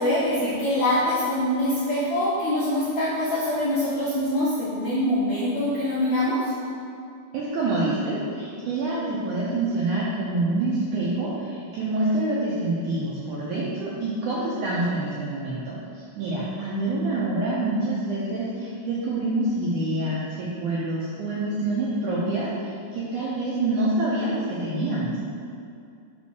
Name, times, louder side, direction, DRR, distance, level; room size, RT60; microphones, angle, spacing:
voice 1, 0.0-6.5, left 1 dB, 75° left, -9 dB, 1.6 m, -24 dB
voice 2, 7.3-25.2, right 2 dB, 80° right, -7 dB, 1.8 m, -26 dB
5.5 x 4.2 x 6.2 m, 2.5 s
omnidirectional pair, 4.5 m